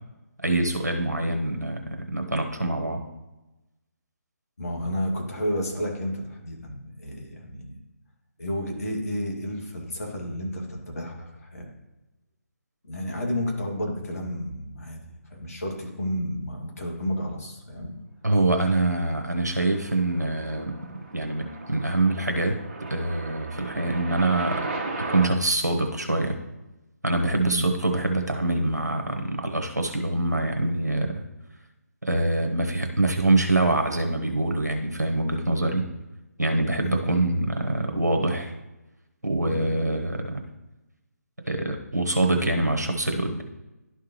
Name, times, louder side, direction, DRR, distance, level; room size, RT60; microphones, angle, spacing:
voice 1, 0.4-3.0 18.2-20.7 21.1-22.6 22.9-24.7 25.1-26.4 27.0-31.2 32.0-35.9 36.4-38.5 39.2-40.4 41.5-43.4, right 2 dB, 80° right, 4 dB, 0.9 m, -25 dB
voice 2, 4.6-7.8 8.4-11.7 12.8-15.0 15.3-17.9 27.5-27.7 36.8-37.0 39.4-39.7, equal, 60° left, -1 dB, 2.3 m, -31 dB
sound 1, 19.3-25.3, right 3 dB, 35° right, 1.2 m, -36 dB
11.5 x 4.8 x 3.2 m, 1.0 s
figure-of-eight pair, 145°, 9 cm